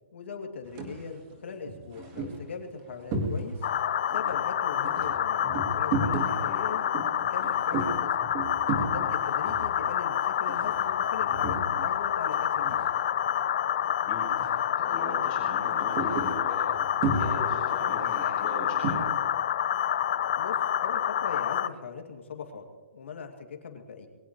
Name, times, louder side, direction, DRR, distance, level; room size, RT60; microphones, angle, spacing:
voice 1, 0.1-3.6 4.1-5.5 5.7-6.9 7.3-8.1 8.8-12.9 20.4-22.7 22.9-24.1, left 5 dB, 70° left, 3 dB, 2.7 m, -40 dB
sound 1, 0.6-1.0 1.5-3.8 4.1-12.0 12.3-13.4 13.7-13.9 14.3-14.7 15.0-19.2, right 3 dB, 20° right, 1.8 m, -34 dB
sound 2, 3.6-21.7, left 10 dB, 40° left, 0.5 m, -28 dB
voice 2, 6.2-6.6 13.9-14.3 14.8-16.6 17.1-19.0, left 2 dB, 20° left, -5 dB, 5.8 m, -40 dB
22.0 x 18.0 x 3.2 m, 1.3 s
hypercardioid pair, 180°, 7 cm